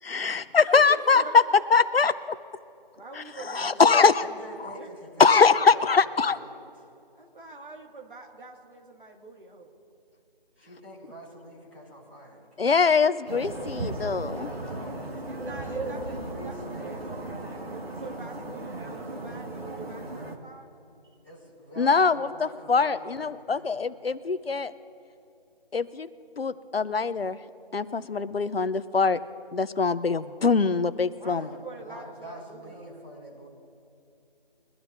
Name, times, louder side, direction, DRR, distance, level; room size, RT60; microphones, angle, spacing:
voice 1, 0.0-1.4 1.7-2.1 3.2-4.2 5.2-6.4 12.6-14.5 21.8-24.7 25.7-26.1 26.4-27.4 27.7-29.2 29.5-31.5, left 5 dB, 75° left, 15 dB, 0.7 m, -22 dB
voice 2, 0.7-1.3 3.0-4.9 7.1-9.7 15.2-17.1 17.7-20.7 31.2-32.9, right 3 dB, 60° right, 1 dB, 2.3 m, -44 dB
voice 3, 3.6-5.9 6.3-6.6 10.5-12.7 14.5-17.1 21.2-23.7 31.2-33.5, equal, 10° right, -10 dB, 2.7 m, -45 dB
sound 1, 13.3-20.4, right 2 dB, 80° right, 2.0 m, -36 dB
23.0 x 12.0 x 2.7 m, 2.7 s
figure-of-eight pair, 180°, 29 cm